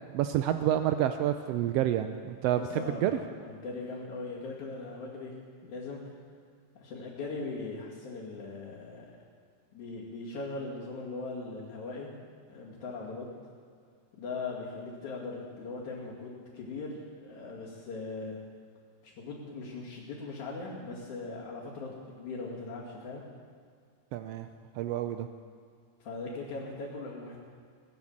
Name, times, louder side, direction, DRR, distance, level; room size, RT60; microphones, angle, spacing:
voice 1, 0.1-3.1 24.1-24.5 24.7-25.3, right 11 dB, 85° right, 8 dB, 1.4 m, -29 dB
voice 2, 2.6-3.2 3.4-5.3 5.6-6.0 6.8-9.1 9.7-12.1 12.5-13.3 14.1-18.4 19.0-23.2 26.0-27.4, left 3 dB, 75° left, -8 dB, 3.7 m, -39 dB
20.5 x 9.7 x 7.3 m, 2.1 s
omnidirectional pair, 3.5 m